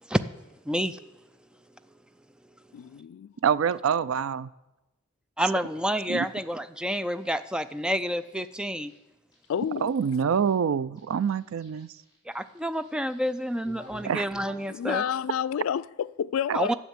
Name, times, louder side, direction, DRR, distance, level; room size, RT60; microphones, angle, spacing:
voice 1, 0.7-1.0 5.4-8.9 12.3-15.0 16.5-16.7, equal, 5° right, 0.3 m, -29 dB
voice 2, 2.7-3.3 9.5-9.9 14.1-14.2 14.7-16.7, left 8 dB, 80° left, 0.3 m, -30 dB
voice 3, 3.4-4.5 6.1-6.3 9.8-11.9 14.0-14.2 16.5-16.6, right 7 dB, 75° right, 0.4 m, -26 dB
sound 1, 7.2-8.9 9.3-10.5 10.9-14.8, right 1 dB, 20° left, 4.5 m, -52 dB
10.0 x 7.3 x 7.9 m
head